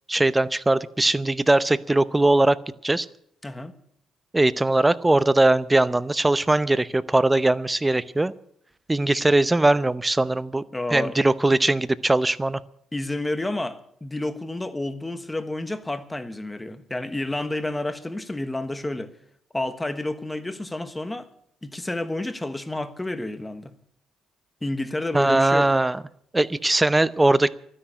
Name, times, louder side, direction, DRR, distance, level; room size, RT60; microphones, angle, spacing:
voice 1, 0.1-2.6 2.8-3.1 4.3-8.3 8.9-10.6 10.9-12.6 25.1-26.0 26.3-27.5, right 2 dB, 15° right, 0.7 m, -20 dB
voice 2, 10.7-11.2 12.9-19.1 19.5-21.3 21.6-23.7 24.6-25.7, left 2 dB, 15° left, 1.3 m, -30 dB
12.5 x 10.0 x 9.8 m
supercardioid pair, 75°, 0 cm